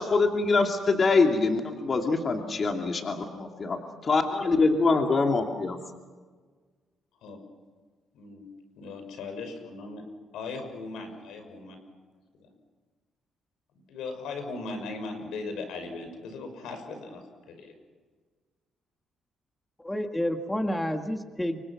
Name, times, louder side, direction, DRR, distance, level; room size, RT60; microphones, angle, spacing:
voice 1, 0.0-5.8, left 3 dB, 40° left, 3 dB, 2.7 m, -24 dB
voice 2, 8.1-10.0 10.3-11.8 12.3-12.5 13.7-17.8, left 3 dB, 85° left, 6 dB, 6.3 m, -38 dB
voice 3, 19.8-21.6, equal, 10° left, 5 dB, 1.9 m, -29 dB
29.5 x 25.0 x 6.1 m, 1.5 s
cardioid pair, 90°, 0 cm